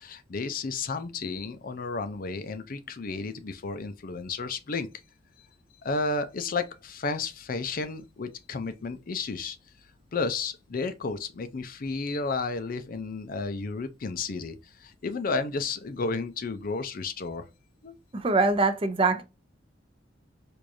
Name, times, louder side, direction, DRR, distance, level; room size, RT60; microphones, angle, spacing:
voice 1, 0.0-4.9 5.8-9.6 10.1-17.4 17.8-17.9, left 4 dB, 50° left, 0.5 m, -32 dB
voice 2, 18.1-19.2, right 3 dB, 30° right, 0.5 m, -23 dB
4.7 x 2.6 x 2.6 m
head